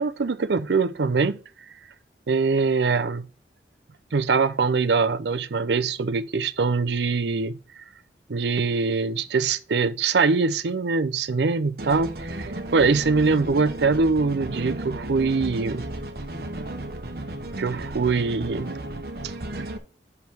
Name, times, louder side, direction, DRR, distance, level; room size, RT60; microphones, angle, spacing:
voice 1, 0.0-1.4 2.3-3.3 4.1-7.6 8.3-15.9 17.6-18.8 19.5-19.6, right 4 dB, 75° right, 0.5 m, -23 dB
sound 1, 11.8-19.8, right 1 dB, 55° right, 1.0 m, -34 dB
6.0 x 5.3 x 6.1 m
head